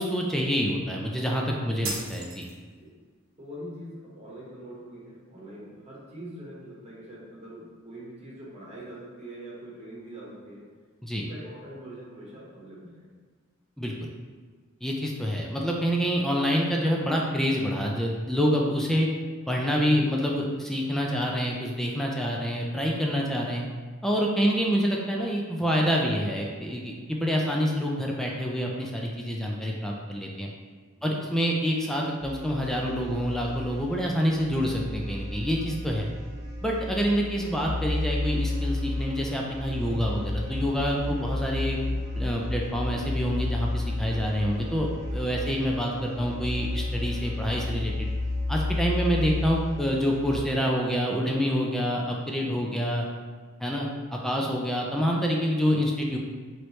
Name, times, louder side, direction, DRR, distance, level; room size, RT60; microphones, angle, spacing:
voice 1, 0.0-2.5 11.0-11.2 13.8-13.9 14.8-19.1 19.5-23.6 24.0-30.5 31.0-36.1 36.6-41.8 42.2-48.1 48.5-53.0 53.6-56.2, equal, ahead, -2 dB, 0.3 m, -27 dB
sound 1, 1.8-2.9, right 3 dB, 85° right, 0.8 m, -35 dB
voice 2, 3.4-10.6 11.1-13.1 19.9-20.1 31.0-31.3, right 1 dB, 30° right, -6 dB, 1.1 m, -43 dB
sound 2, 32.2-50.4, left 2 dB, 50° right, 0.7 m, -32 dB
4.5 x 3.1 x 3.0 m, 1.5 s
head